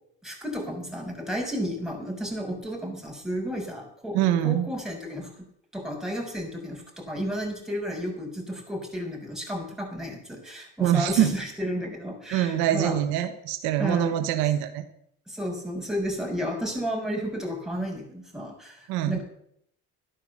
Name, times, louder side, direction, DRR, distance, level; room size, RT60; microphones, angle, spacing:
voice 1, 0.2-5.3 5.7-12.9 13.8-14.1 15.3-19.2, equal, ahead, 0 dB, 6.5 m, -32 dB
voice 2, 4.1-4.7 10.8-11.3 12.3-14.8 18.9-19.2, right 11 dB, 90° right, 8 dB, 1.3 m, -24 dB
12.0 x 10.5 x 7.4 m, 0.69 s
supercardioid pair, 65°, 37 cm